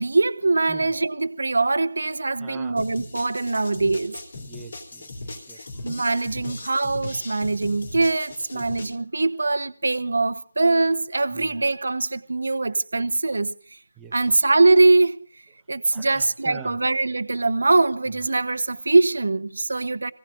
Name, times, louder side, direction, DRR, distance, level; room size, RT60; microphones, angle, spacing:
voice 1, 0.0-4.1 5.8-13.5 14.1-15.2 15.7-20.1, right 3 dB, 60° right, 0.9 m, -22 dB
voice 2, 2.4-2.8 4.4-5.1 5.5-5.9 6.5-6.6 8.5-8.7 11.3-11.6 14.0-14.1 15.9-16.8, right 7 dB, 10° right, 0.9 m, -44 dB
sound 1, 2.8-8.9, left 2 dB, 50° left, 3.4 m, -38 dB
27.5 x 17.0 x 2.6 m
figure-of-eight pair, 155°, 0 cm